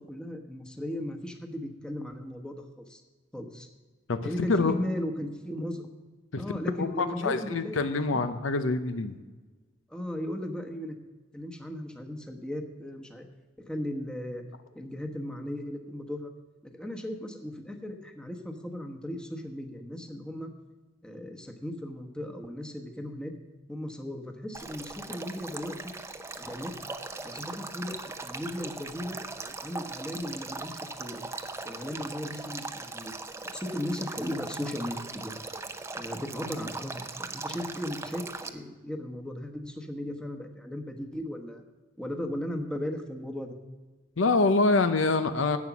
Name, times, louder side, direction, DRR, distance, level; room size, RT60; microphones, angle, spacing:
voice 1, 0.0-3.0 3.3-3.7 4.2-5.9 6.4-8.2 9.9-11.0 11.3-13.3 13.6-14.4 14.7-16.3 16.6-20.5 21.0-23.3 23.7-25.9 26.4-26.7 27.2-29.2 29.6-31.2 31.6-33.1 33.4-35.3 36.0-41.6 42.0-43.5, left 1 dB, 5° left, 3 dB, 1.1 m, -36 dB
voice 2, 4.1-4.7 6.3-6.4 6.8-9.2 44.2-45.6, left 3 dB, 75° left, 10 dB, 0.7 m, -25 dB
Male speech man speaking / Stream / Trickle dribble, 24.5-38.5, right 3 dB, 15° right, 0.6 m, -39 dB
11.0 x 8.5 x 6.0 m, 1.3 s
head